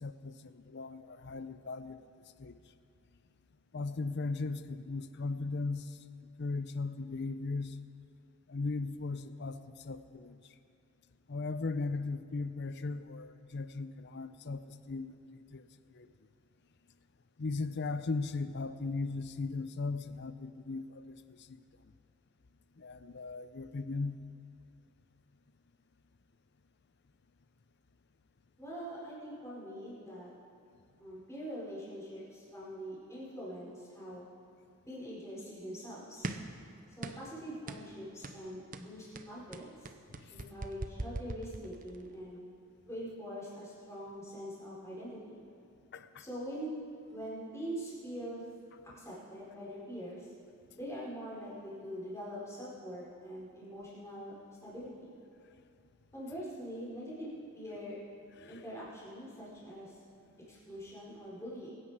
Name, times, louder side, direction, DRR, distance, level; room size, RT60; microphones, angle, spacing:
voice 1, 0.0-2.0 2.4-2.5 3.7-5.9 6.4-7.7 8.5-9.6 9.8-10.4 11.3-15.1 15.5-15.6 16.0-16.1 17.4-21.4 22.8-24.2 45.9-46.2 58.4-58.6, left 3 dB, 50° left, 12 dB, 0.6 m, -37 dB
voice 2, 28.6-30.3 31.0-34.2 34.9-36.3 37.0-39.9 40.3-42.4 42.9-45.4 46.2-46.7 47.1-48.4 48.9-50.3 50.8-54.3 54.6-55.1 56.1-58.0 58.5-60.0 60.5-61.7, equal, 15° left, -7 dB, 4.4 m, -43 dB
sound 1, 36.2-36.6 37.0-37.3 37.7-37.9 38.2-38.4 38.7-42.1, right 2 dB, 40° right, 0.7 m, -41 dB
22.5 x 10.0 x 4.8 m, 2.4 s
head